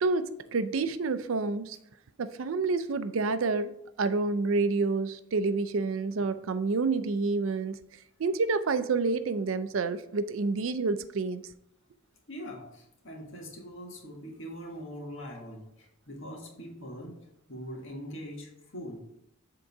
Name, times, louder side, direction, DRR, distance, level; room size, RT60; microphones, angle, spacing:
voice 1, 0.0-1.8 2.2-3.7 4.0-7.8 8.2-11.4, right 3 dB, 75° right, 12 dB, 0.5 m, -28 dB
voice 2, 12.3-19.0, equal, 65° left, -1 dB, 1.8 m, -42 dB
7.8 x 3.8 x 4.7 m, 0.77 s
head